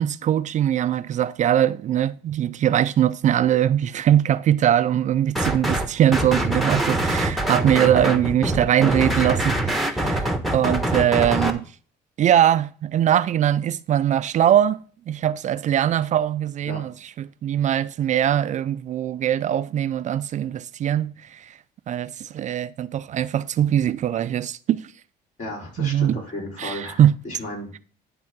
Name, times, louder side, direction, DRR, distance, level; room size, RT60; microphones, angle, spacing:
voice 1, 0.0-11.6 12.2-21.5 21.9-24.8 25.8-26.2 26.6-27.1, right 10 dB, 45° right, 0.4 m, -21 dB
sound 1, 5.4-5.9 6.1-11.5, right 1 dB, ahead, 1.0 m, -24 dB
voice 2, 25.4-27.8, left 1 dB, 50° left, 4.5 m, -34 dB
10.5 x 3.6 x 5.8 m
cardioid pair, 110°, 17 cm